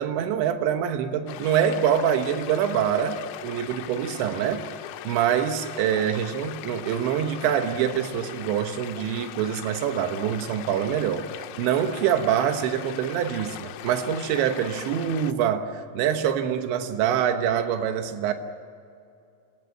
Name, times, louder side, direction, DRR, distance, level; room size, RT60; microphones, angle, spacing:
voice 1, 0.0-4.7 5.1-18.3, right 9 dB, 80° right, 7 dB, 3.5 m, -25 dB
sound 1, 1.3-15.3, left 14 dB, 90° left, 3.1 m, -40 dB
26.0 x 19.5 x 7.4 m, 2.5 s
omnidirectional pair, 5.1 m